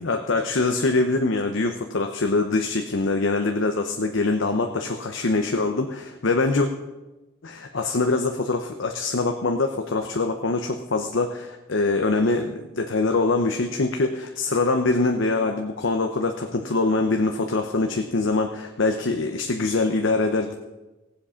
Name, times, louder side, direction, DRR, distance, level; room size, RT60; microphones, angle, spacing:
voice 1, 0.0-6.7 7.4-20.5, left 3 dB, 70° left, 4 dB, 0.8 m, -24 dB
18.5 x 7.7 x 5.7 m, 1.1 s
head